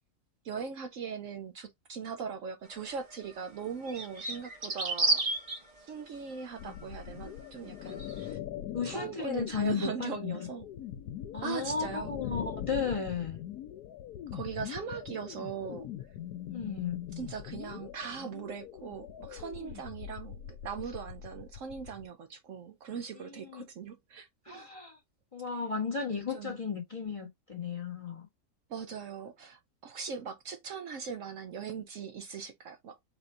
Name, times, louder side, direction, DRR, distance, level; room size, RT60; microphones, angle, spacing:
voice 1, 0.4-5.3 5.8-8.4 8.8-10.7 11.4-12.1 14.3-15.9 17.2-24.7 26.3-26.6 28.7-33.0, right 6 dB, 65° right, 0.9 m, -40 dB
sound 1, 2.9-3.0 3.9-5.6 7.9-8.3, right 3 dB, 30° right, 1.0 m, -30 dB
sound 2, 6.6-22.1, left 11 dB, 80° left, 1.1 m, -42 dB
voice 2, 8.7-10.5 11.3-13.4 16.3-17.0 23.2-23.7 24.4-25.0 25.3-28.3, left 5 dB, 25° left, 1.1 m, -34 dB
4.3 x 2.6 x 4.2 m
omnidirectional pair, 1.6 m